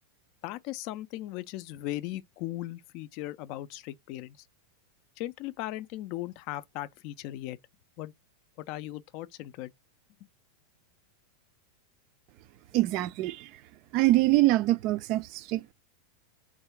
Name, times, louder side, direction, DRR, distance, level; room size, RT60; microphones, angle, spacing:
voice 1, 0.4-4.4 5.2-7.6 8.0-8.1 8.6-9.7, left 15 dB, 45° left, 0.4 m, -38 dB
voice 2, 12.7-13.6 13.9-15.7, right 17 dB, 40° right, 0.3 m, -25 dB
3.6 x 2.7 x 4.5 m
figure-of-eight pair, 90°, 0 cm